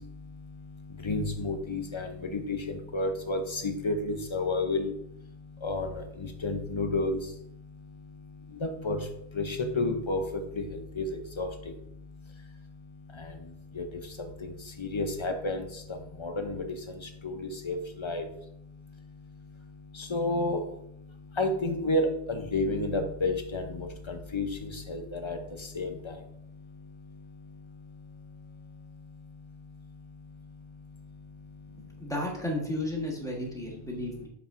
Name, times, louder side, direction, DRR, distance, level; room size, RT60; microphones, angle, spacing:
voice 1, 1.0-4.9 5.6-6.0 6.4-7.2 8.6-9.0 9.4-10.2 10.6-10.7 11.0-11.5 13.8-13.9 14.4-14.5 14.8-15.6 16.2-16.6 17.2-17.4 17.6-18.2 20.1-20.6 21.4-25.4 25.7-26.1, left 2 dB, 35° left, 5 dB, 0.6 m, -30 dB
voice 2, 31.8-34.3, left 1 dB, 5° left, -1 dB, 1.1 m, -33 dB
7.1 x 5.7 x 2.5 m, 0.75 s
omnidirectional pair, 1.1 m